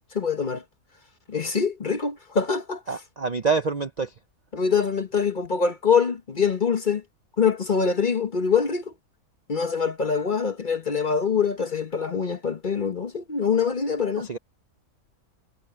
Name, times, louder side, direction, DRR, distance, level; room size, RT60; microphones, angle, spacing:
voice 1, 0.1-0.6 1.3-2.8 4.5-7.0 7.4-8.9 9.5-14.3, left 6 dB, 35° left, 1.1 m, -24 dB
voice 2, 2.9-4.1 14.3-14.4, right 4 dB, 45° right, 0.5 m, -26 dB
omnidirectional pair, 1.6 m